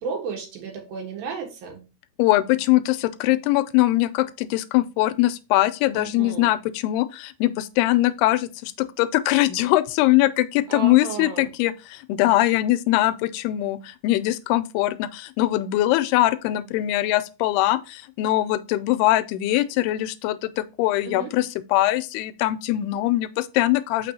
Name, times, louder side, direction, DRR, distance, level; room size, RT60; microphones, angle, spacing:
voice 1, 0.0-1.8 5.9-6.5 10.7-11.5 21.0-21.3, right 6 dB, 70° right, 3.0 m, -33 dB
voice 2, 2.2-24.1, left 16 dB, 85° left, 2.6 m, -22 dB
6.7 x 5.9 x 2.8 m
omnidirectional pair, 4.5 m